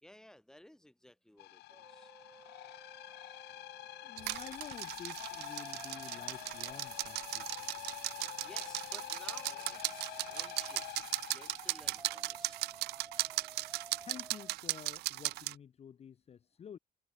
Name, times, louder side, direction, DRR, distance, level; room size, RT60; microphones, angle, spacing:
voice 1, 0.0-2.1 8.4-12.6, left 1 dB, 5° left, 1.8 m, -57 dB
sound 1, 1.4-12.2, left 17 dB, 75° left, 1.1 m, -47 dB
sound 2, 1.7-4.5 5.2-10.9 11.5-14.5, right 3 dB, 15° right, 2.8 m, -55 dB
voice 2, 4.0-7.8 14.0-16.8, left 8 dB, 35° left, 0.9 m, -51 dB
sound 3, 4.2-15.5, right 19 dB, 75° right, 0.5 m, -38 dB
cardioid pair, 110°, 17 cm